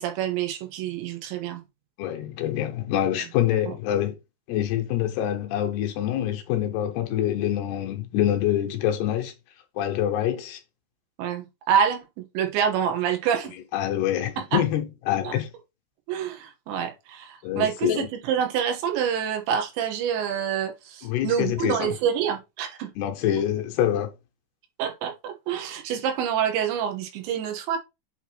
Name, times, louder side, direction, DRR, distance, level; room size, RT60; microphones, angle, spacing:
voice 1, 0.0-1.6 11.2-12.0 12.3-13.5 14.5-14.6 15.2-15.3 16.1-22.9 24.8-27.8, right 8 dB, 90° right, 3.5 m, -27 dB
voice 2, 2.0-4.2 4.5-9.3 9.8-10.6 13.7-15.5 17.4-18.1 21.0-22.0 23.0-24.1, left 11 dB, 80° left, 2.6 m, -25 dB
8.1 x 2.9 x 4.3 m
omnidirectional pair, 5.0 m